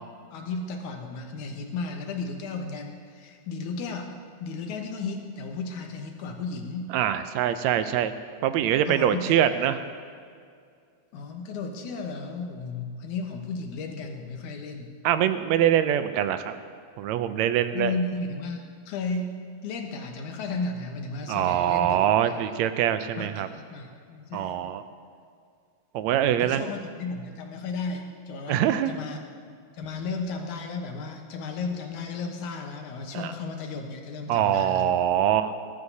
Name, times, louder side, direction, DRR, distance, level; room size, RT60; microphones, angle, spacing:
voice 1, 0.3-4.1 4.4-6.9 8.9-9.4 11.1-14.9 17.7-22.0 22.2-22.5 23.2-24.5 26.4-29.2 29.7-34.9, left 4 dB, 90° left, 3 dB, 2.6 m, -34 dB
voice 2, 6.9-8.1 8.4-9.8 15.0-16.6 17.0-17.9 21.3-23.5 24.3-24.8 25.9-26.7 28.5-28.9 33.1-33.3 34.3-35.5, right 10 dB, 80° right, 10 dB, 1.8 m, -24 dB
20.0 x 13.0 x 2.8 m, 2.2 s
omnidirectional pair, 3.4 m